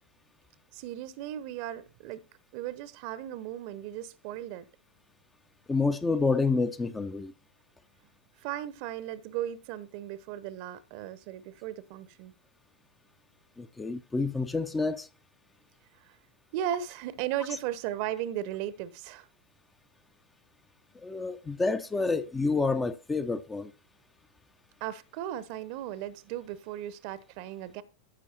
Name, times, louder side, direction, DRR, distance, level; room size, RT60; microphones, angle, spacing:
voice 1, 0.7-2.2 2.5-4.7 8.4-12.3 16.0-16.2 16.5-19.3 24.8-27.8, right 12 dB, 45° right, 0.9 m, -36 dB
voice 2, 5.7-7.3 13.6-15.1 21.0-23.7, left 3 dB, 10° left, 0.7 m, -28 dB
15.0 x 6.1 x 2.9 m
figure-of-eight pair, 90°, 0 cm